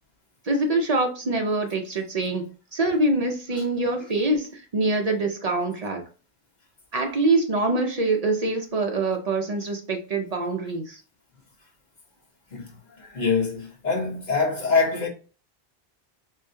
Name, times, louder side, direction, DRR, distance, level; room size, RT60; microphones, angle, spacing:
voice 1, 0.4-6.0 6.9-11.0, right 2 dB, 45° right, 0.5 m, -25 dB
voice 2, 13.0-15.1, left 4 dB, 45° left, 1.1 m, -24 dB
3.6 x 3.5 x 2.7 m
omnidirectional pair, 1.1 m